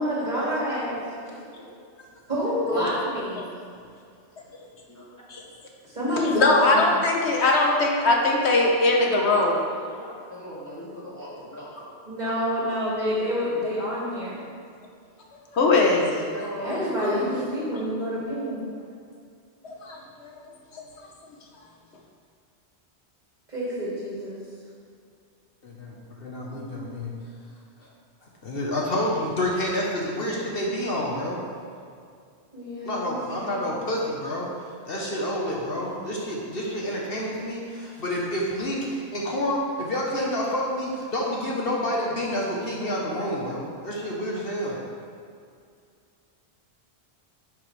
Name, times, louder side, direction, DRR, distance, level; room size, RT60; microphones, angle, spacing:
voice 1, 0.0-1.0 2.3-3.5 5.9-6.9 12.1-14.4 16.6-18.6 23.5-24.4 32.5-33.2 33.5-33.8, equal, 40° right, -7 dB, 2.6 m, -28 dB
voice 2, 1.0-1.7 2.7-3.0 4.9-5.1 8.6-11.8 13.4-13.6 15.6-17.3, equal, 15° left, -8 dB, 2.5 m, -37 dB
voice 3, 6.3-9.6 15.5-16.1 19.8-20.3, left 2 dB, 75° left, 0 dB, 1.3 m, -20 dB
voice 4, 25.6-25.9 26.2-27.1 28.4-31.4 32.8-34.5 34.9-44.8, left 1 dB, 60° left, -3 dB, 1.4 m, -28 dB
11.0 x 7.0 x 3.4 m, 2.3 s
omnidirectional pair, 1.1 m